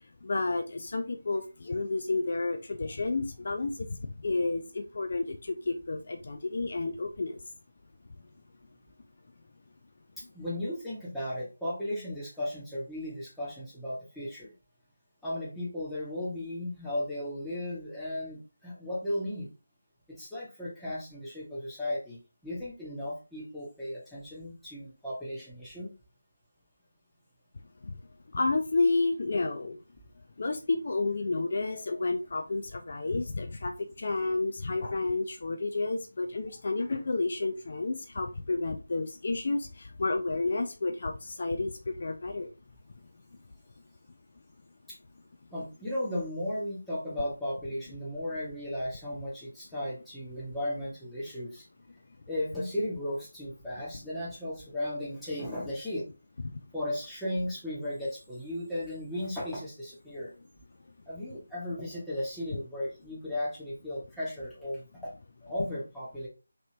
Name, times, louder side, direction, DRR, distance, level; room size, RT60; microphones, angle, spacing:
voice 1, 0.2-7.4 27.8-27.9 28.3-29.8 30.4-42.5, left 3 dB, 50° left, 5 dB, 0.4 m, -31 dB
voice 2, 10.3-14.5 15.2-19.5 20.1-25.9 44.9-45.0 45.5-51.6 52.3-56.0 56.7-60.3 61.1-65.1 65.4-66.3, left 1 dB, 5° left, -9 dB, 1.0 m, -35 dB
3.0 x 2.9 x 2.8 m, 0.32 s
figure-of-eight pair, 160°, 0 cm